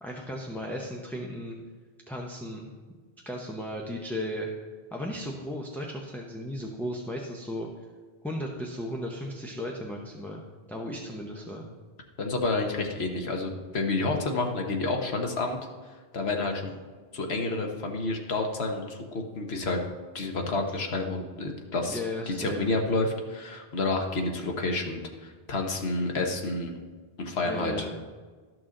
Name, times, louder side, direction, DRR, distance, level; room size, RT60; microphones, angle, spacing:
voice 1, 0.0-1.6 2.1-2.7 3.3-4.5 4.9-7.7 8.2-10.4 10.7-11.7 21.9-22.7 27.4-28.0, left 1 dB, ahead, -1 dB, 0.6 m, -35 dB
voice 2, 12.2-15.6 16.1-16.7 17.1-19.8 20.1-22.0 22.4-26.7 27.2-27.9, left 2 dB, 75° left, 2 dB, 1.3 m, -29 dB
12.5 x 6.1 x 3.8 m, 1.4 s
omnidirectional pair, 1.1 m